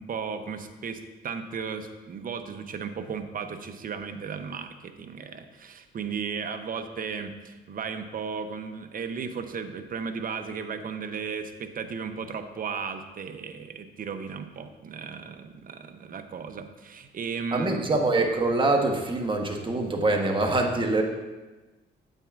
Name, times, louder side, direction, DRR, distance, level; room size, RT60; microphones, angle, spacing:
voice 1, 0.0-18.0, right 5 dB, 45° right, 8 dB, 0.7 m, -35 dB
voice 2, 17.5-21.0, right 2 dB, 25° right, 2 dB, 1.1 m, -24 dB
9.0 x 8.1 x 2.5 m, 1.2 s
cardioid pair, 90°, 20 cm